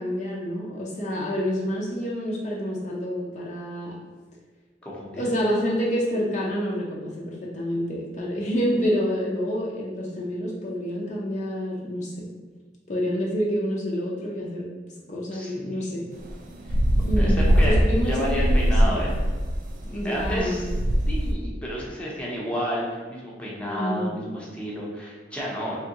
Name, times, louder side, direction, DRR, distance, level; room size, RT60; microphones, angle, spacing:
voice 1, 0.0-4.0 5.1-12.3 12.9-14.7 15.1-16.0 17.0-19.0 19.9-20.7 23.6-24.1, equal, 45° left, -4 dB, 0.5 m, -28 dB
voice 2, 4.8-5.2 15.3-16.1 16.6-16.8 17.2-19.1 19.8-20.7 21.1-25.8, equal, 5° left, -5 dB, 0.7 m, -31 dB
sound 1, 16.2-21.3, equal, 50° right, 0.4 m, -22 dB
3.5 x 3.0 x 2.9 m, 1.4 s
head